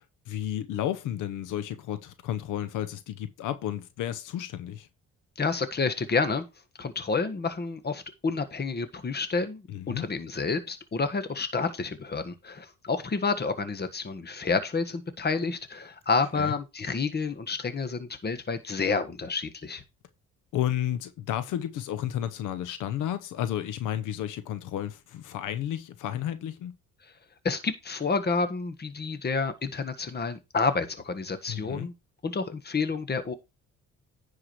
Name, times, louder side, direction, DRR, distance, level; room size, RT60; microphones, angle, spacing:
voice 1, 0.3-4.9 9.7-10.1 16.3-16.6 20.5-26.8 31.5-31.9, left 11 dB, 90° left, 0.9 m, -32 dB
voice 2, 5.4-6.4 6.8-19.8 27.4-31.9 32.2-33.3, left 4 dB, 35° left, 1.6 m, -29 dB
10.0 x 4.9 x 4.8 m
cardioid pair, 90°, 30 cm